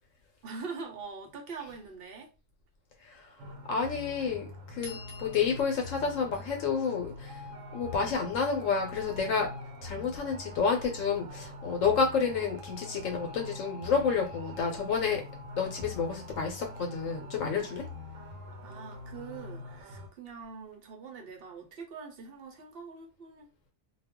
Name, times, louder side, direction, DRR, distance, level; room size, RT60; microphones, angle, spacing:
voice 1, 0.4-2.3 18.6-23.7, right 5 dB, 55° right, 0.8 m, -43 dB
sound 1, 3.4-20.1, left 2 dB, 85° right, 1.1 m, -44 dB
voice 2, 3.7-7.4 7.7-9.5 9.8-15.2 15.6-17.8, left 5 dB, 80° left, 1.0 m, -30 dB
sound 2, 4.8-7.4, left 3 dB, 40° left, 0.6 m, -50 dB
2.4 x 2.2 x 3.5 m
omnidirectional pair, 1.3 m